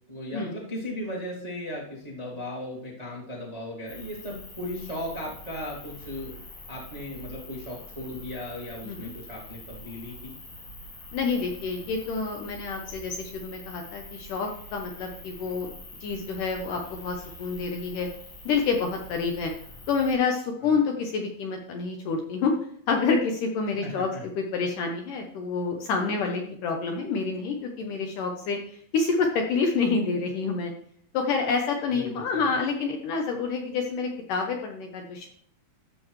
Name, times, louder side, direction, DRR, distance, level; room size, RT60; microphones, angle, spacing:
voice 1, 0.1-6.3 6.7-10.3 20.6-20.7 23.7-24.3 31.9-32.5, left 1 dB, 40° right, -4 dB, 0.5 m, -37 dB
sound 1, 3.9-20.2, left 1 dB, 55° left, 1.3 m, -45 dB
voice 2, 11.1-15.7 16.0-18.1 18.5-19.5 19.9-22.5 22.9-24.1 24.4-30.7 31.1-35.3, left 4 dB, 75° left, 2 dB, 2.0 m, -28 dB
13.5 x 7.0 x 3.2 m, 0.62 s
omnidirectional pair, 4.8 m